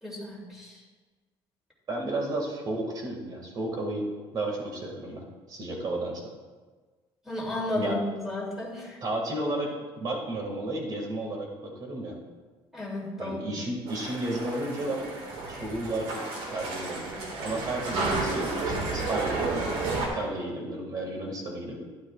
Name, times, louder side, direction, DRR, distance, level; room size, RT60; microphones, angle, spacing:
voice 1, 0.0-0.8 7.2-9.0 12.7-13.6, left 1 dB, 5° right, -4 dB, 2.8 m, -33 dB
voice 2, 1.9-4.1 4.3-6.2 7.7-8.0 9.0-12.1 13.2-15.1 15.5-16.2 16.5-17.0 17.4-19.8 20.1-21.8, right 1 dB, 40° right, 0 dB, 2.1 m, -33 dB
sound 1, 13.9-20.1, right 3 dB, 70° right, 2.0 m, -31 dB
12.0 x 11.0 x 2.5 m, 1.4 s
cardioid pair, 150°, 10 cm